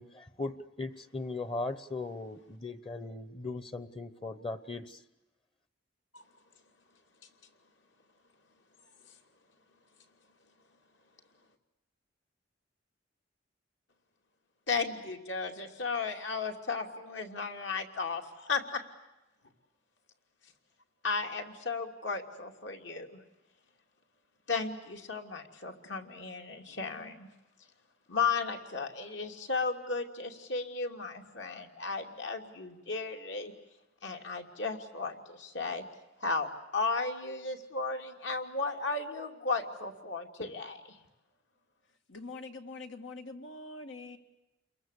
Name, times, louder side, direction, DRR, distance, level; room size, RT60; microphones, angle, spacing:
voice 1, 0.0-5.0, left 2 dB, 30° left, 13 dB, 1.0 m, -38 dB
voice 2, 14.7-18.8 21.0-23.2 24.5-27.3 28.1-33.5 34.0-35.8 36.2-41.0, left 4 dB, 70° left, 4 dB, 3.0 m, -35 dB
voice 3, 42.1-44.2, left 3 dB, 90° left, 6 dB, 2.4 m, -44 dB
29.5 x 22.5 x 8.4 m, 0.96 s
head